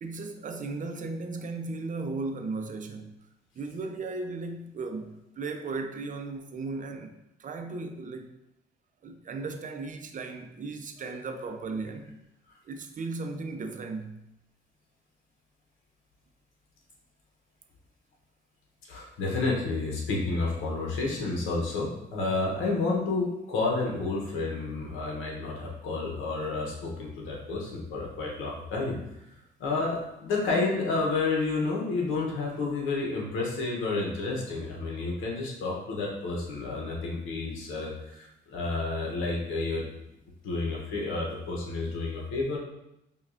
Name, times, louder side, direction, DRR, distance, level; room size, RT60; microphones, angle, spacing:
voice 1, 0.0-3.1 3.5-8.3 9.0-12.2 12.7-14.2, right 3 dB, 40° right, 0.5 m, -36 dB
voice 2, 18.9-29.0 29.6-39.9 40.4-42.6, left 3 dB, 90° left, 0.9 m, -30 dB
5.5 x 2.3 x 2.5 m
cardioid pair, 90°, 20 cm